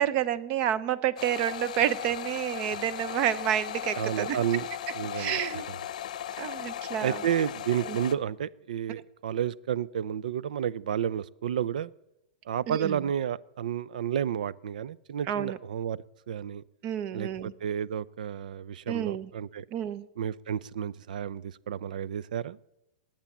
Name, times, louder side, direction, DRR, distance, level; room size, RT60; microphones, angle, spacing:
voice 1, 0.0-4.4 5.1-5.6 6.4-7.2 7.9-8.0 8.9-9.0 12.7-13.0 15.3-15.6 16.8-17.5 18.9-19.3 19.7-20.1, right 10 dB, 25° right, 16 dB, 0.5 m, -29 dB
sound 1, 1.2-8.1, left 11 dB, 65° left, 0.7 m, -37 dB
voice 2, 4.0-4.7 4.9-5.4 7.0-11.9 12.5-16.6 17.1-19.6 20.2-22.6, right 9 dB, 80° right, 21 dB, 0.5 m, -31 dB
20.5 x 8.9 x 7.2 m, 0.90 s
supercardioid pair, 175°, 4 cm